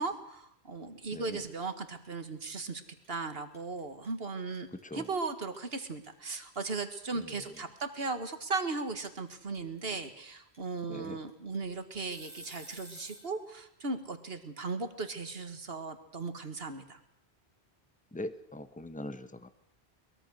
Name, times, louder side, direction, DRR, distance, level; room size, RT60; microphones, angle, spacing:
voice 1, 0.0-2.8 3.1-17.0, right 3 dB, 65° right, 9 dB, 2.0 m, -37 dB
sound 1, 2.0-2.3 2.5-13.3, equal, 55° left, 6.6 m, -52 dB
voice 2, 18.1-19.5, left 1 dB, 10° left, 11 dB, 1.1 m, -41 dB
23.0 x 21.0 x 6.5 m, 0.72 s
omnidirectional pair, 1.1 m